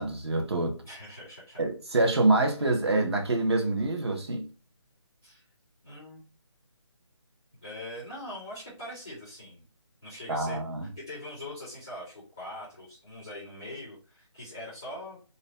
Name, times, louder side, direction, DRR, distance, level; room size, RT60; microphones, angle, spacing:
voice 1, 0.0-0.8 1.6-4.5 10.3-10.9, right 2 dB, 60° right, 0.7 m, -26 dB
voice 2, 0.8-1.6 5.2-5.4 5.8-6.2 7.6-9.7 10.0-10.6 10.9-15.2, left 1 dB, 5° left, 0.4 m, -42 dB
2.6 x 2.1 x 3.1 m
figure-of-eight pair, 175°, 16 cm